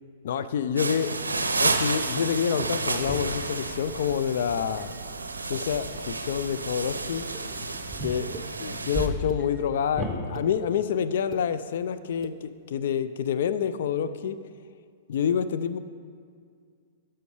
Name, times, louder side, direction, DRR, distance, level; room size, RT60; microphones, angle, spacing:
voice 1, 0.2-4.9 5.5-7.2 8.0-14.4 15.1-15.8, left 8 dB, 60° left, 12 dB, 0.4 m, -28 dB
sound 1, 0.8-9.1, right 3 dB, 85° right, 0.5 m, -31 dB
sound 2, 3.0-10.1, equal, ahead, 1.7 m, -38 dB
sound 3, 7.3-7.4 8.3-8.5 9.1-9.4 10.1-10.5 11.1-11.4 12.1-12.3, right 5 dB, 25° right, 0.6 m, -41 dB
13.0 x 5.7 x 3.3 m, 2.2 s
figure-of-eight pair, 110°, 0 cm